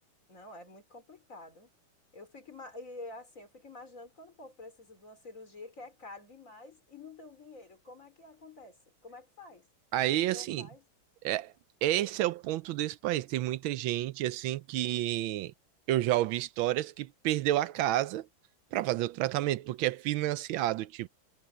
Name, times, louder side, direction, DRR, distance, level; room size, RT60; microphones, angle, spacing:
voice 1, 0.3-1.7 2.1-9.7 10.3-10.9, left 2 dB, 40° left, 4.4 m, -48 dB
voice 2, 9.9-10.7 11.2-11.5 11.8-15.5 15.9-18.3 18.7-21.1, right 14 dB, 85° right, 1.4 m, -30 dB
omnidirectional pair, 2.2 m